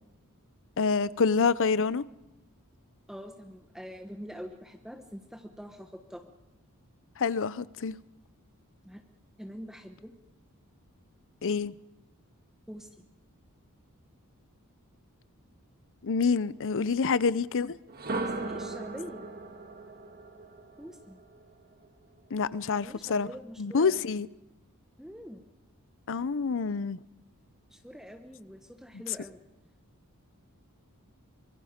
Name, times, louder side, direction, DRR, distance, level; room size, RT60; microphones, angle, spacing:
voice 1, 0.8-2.0 7.2-8.0 11.4-11.7 16.0-17.7 22.3-23.3 23.6-24.3 26.1-27.0, left 5 dB, 60° left, 0.6 m, -27 dB
voice 2, 3.1-6.3 8.8-9.0 9.4-10.1 12.7-13.0 18.2-19.3 20.8-21.2 22.7-24.0 25.0-25.4 27.7-29.4, equal, ahead, 1.1 m, -45 dB
sound 1, 17.9-21.9, right 2 dB, 45° right, 1.8 m, -38 dB
24.5 x 23.0 x 5.2 m
head